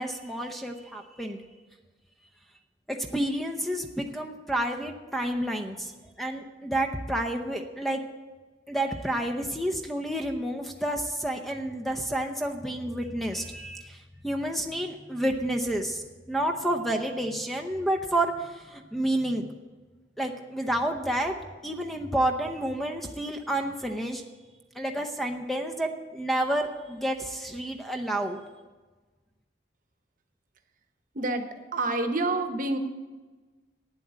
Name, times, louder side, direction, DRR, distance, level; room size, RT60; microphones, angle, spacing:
voice 1, 0.0-1.4 2.9-5.9 6.2-8.0 8.7-19.4 20.2-21.3 21.6-24.2 24.8-28.4, right 1 dB, ahead, 4 dB, 0.7 m, -30 dB
voice 2, 31.1-32.8, right 2 dB, 50° right, 7 dB, 1.0 m, -28 dB
9.1 x 7.8 x 8.7 m, 1.3 s
head